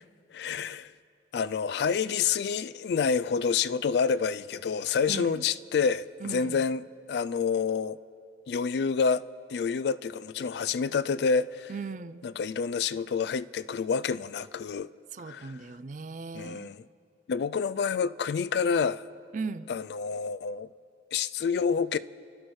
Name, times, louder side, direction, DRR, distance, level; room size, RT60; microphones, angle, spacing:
voice 1, 0.3-0.9 1.3-6.8 7.1-8.0 8.5-9.2 9.5-11.7 12.2-14.9 15.3-15.5 16.3-16.8 17.3-19.0 19.7-20.7 21.1-22.0, left 6 dB, 60° left, 0.3 m, -28 dB
voice 2, 5.1-5.5 6.2-6.7 11.7-12.2 15.1-16.7 19.3-19.7, right 4 dB, 40° right, 0.4 m, -38 dB
28.5 x 13.0 x 3.2 m
head